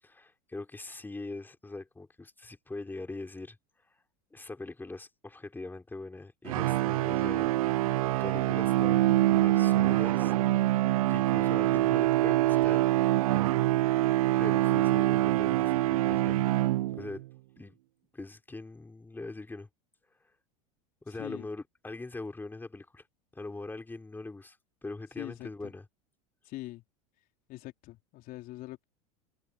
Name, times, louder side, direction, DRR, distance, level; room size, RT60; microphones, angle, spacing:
voice 1, 0.0-3.6 4.3-10.3 11.1-12.8 14.4-16.4 16.9-17.3 17.6-17.8 18.1-19.7 21.0-23.1 23.3-25.9, left 2 dB, 10° left, 3.9 m, -42 dB
sound 1, 6.5-17.2, right 16 dB, 70° right, 0.6 m, -25 dB
voice 2, 25.2-25.7 26.5-26.8 27.5-28.8, left 17 dB, 50° left, 3.9 m, -43 dB
hypercardioid pair, 90°, 19 cm